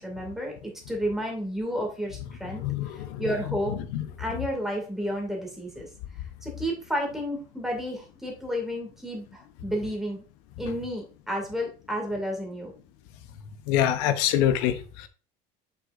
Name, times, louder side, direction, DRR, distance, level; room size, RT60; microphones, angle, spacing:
voice 1, 0.0-2.6 2.9-3.8 4.2-5.9 6.4-10.3 10.6-12.7, equal, ahead, 2.4 m, -31 dB
voice 2, 2.6-3.2 3.7-4.1 13.7-15.1, left 11 dB, 90° left, 0.9 m, -25 dB
7.5 x 6.0 x 2.6 m
cardioid pair, 155°, 17 cm